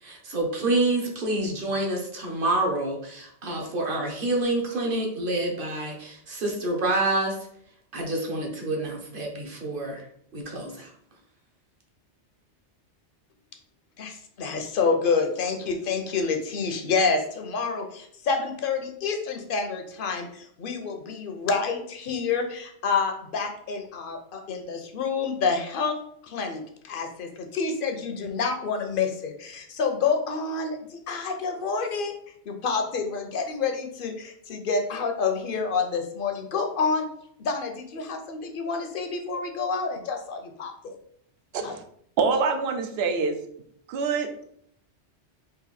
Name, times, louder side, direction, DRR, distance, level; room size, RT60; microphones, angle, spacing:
voice 1, 0.0-7.4 7.9-10.0 10.3-10.9, right 2 dB, 50° right, 0 dB, 1.1 m, -27 dB
voice 2, 14.0-26.0 26.2-32.1 32.5-37.1 37.4-40.9 41.6-41.7, left 5 dB, 55° left, 5 dB, 0.8 m, -28 dB
voice 3, 42.2-43.4 43.9-44.3, right 4 dB, 65° right, 6 dB, 0.8 m, -25 dB
3.9 x 2.6 x 4.1 m, 0.68 s
omnidirectional pair, 1.2 m